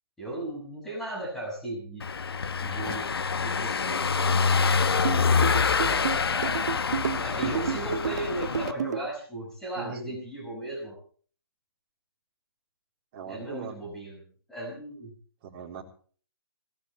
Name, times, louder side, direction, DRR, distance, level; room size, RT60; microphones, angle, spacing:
voice 1, 0.2-2.1 2.6-4.7 7.2-11.0 13.2-14.2 14.5-15.1, right 1 dB, 5° left, -4 dB, 6.4 m, -36 dB
Car passing by / Engine, 2.0-8.7, left 5 dB, 80° left, 1.1 m, -26 dB
sound 1, 5.0-9.0, right 8 dB, 45° right, 0.6 m, -30 dB
voice 2, 7.7-8.2 9.8-10.2 13.1-13.8 15.4-15.8, right 7 dB, 25° right, 0 dB, 3.7 m, -41 dB
21.0 x 18.0 x 3.3 m, 0.44 s
hypercardioid pair, 165°, 13 cm